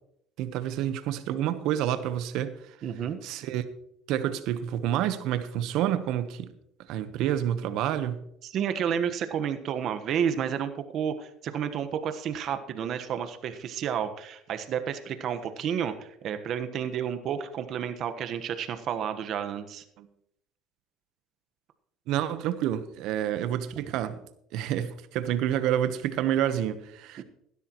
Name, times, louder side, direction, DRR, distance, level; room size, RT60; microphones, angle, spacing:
voice 1, 0.4-2.5 3.2-3.6 4.1-6.5 6.9-8.2 20.0-20.1 22.1-24.2 24.5-27.2, right 11 dB, 70° right, 1.0 m, -28 dB
voice 2, 2.8-3.2 8.4-19.8 27.2-27.3, right 8 dB, 55° right, 1.2 m, -31 dB
16.5 x 12.0 x 3.0 m
supercardioid pair, 105°, 0 cm